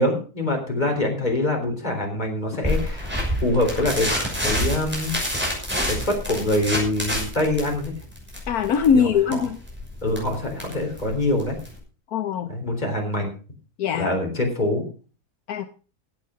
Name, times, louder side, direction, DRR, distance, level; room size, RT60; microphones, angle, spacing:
voice 1, 0.0-3.1 3.4-5.1 5.8-7.9 8.9-9.0 9.3-9.4 10.0-11.6 12.5-13.3 13.9-14.8, left 1 dB, 25° left, 3 dB, 3.7 m, -24 dB
sound 1, 2.6-11.8, equal, 5° right, 6.0 m, -28 dB
voice 2, 8.5-9.6 12.1-12.5 13.8-14.1 15.5-15.7, left 7 dB, 75° left, 9 dB, 1.3 m, -21 dB
16.0 x 8.6 x 5.0 m, 0.37 s
omnidirectional pair, 1.6 m